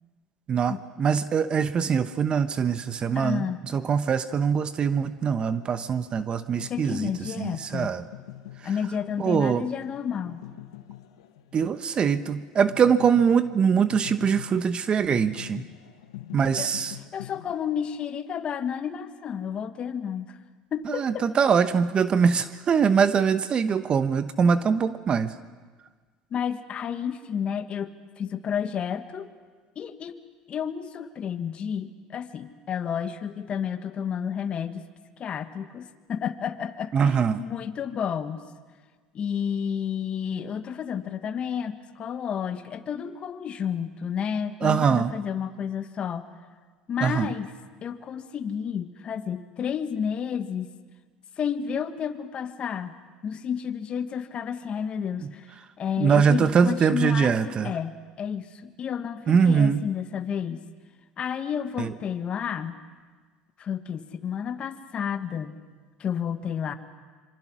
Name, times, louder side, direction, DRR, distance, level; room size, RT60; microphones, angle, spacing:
voice 1, 0.5-3.5 3.7-7.1 7.4-8.0 9.2-9.7 11.5-15.6 16.3-17.0 20.9-25.3 36.9-37.4 44.6-45.1 47.0-47.3 55.2-55.3 56.0-57.7 59.3-59.8 61.8-61.9, right 6 dB, 40° right, 12 dB, 0.9 m, -23 dB
voice 2, 3.1-3.6 6.7-7.9 8.6-10.4 16.6-16.7 17.1-20.4 20.7-21.3 26.3-29.3 29.7-30.2 30.5-34.8 35.2-38.4 39.1-46.3 46.9-47.5 47.8-50.7 51.4-52.9 53.2-55.5 55.8-60.6 61.2-62.8 63.6-65.6 66.0-66.7, left 8 dB, 40° left, 9 dB, 1.5 m, -31 dB
sound 1, 5.2-17.5, left 14 dB, 90° left, 1.4 m, -44 dB
26.0 x 24.0 x 6.2 m, 1.4 s
supercardioid pair, 90°, 3 cm